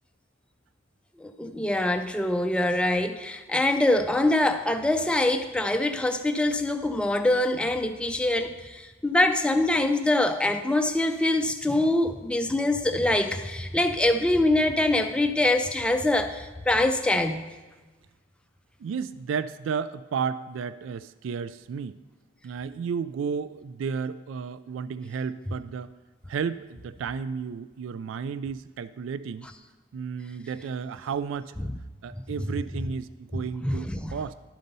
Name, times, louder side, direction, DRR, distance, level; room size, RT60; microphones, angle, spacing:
voice 1, 1.2-17.5 33.3-34.1, left 1 dB, 5° left, 7 dB, 0.4 m, -24 dB
voice 2, 18.8-22.0 22.4-25.9 26.3-29.5 29.9-31.7 32.0-34.3, right 6 dB, 70° right, 15 dB, 0.3 m, -33 dB
11.5 x 4.0 x 5.3 m, 1.3 s
head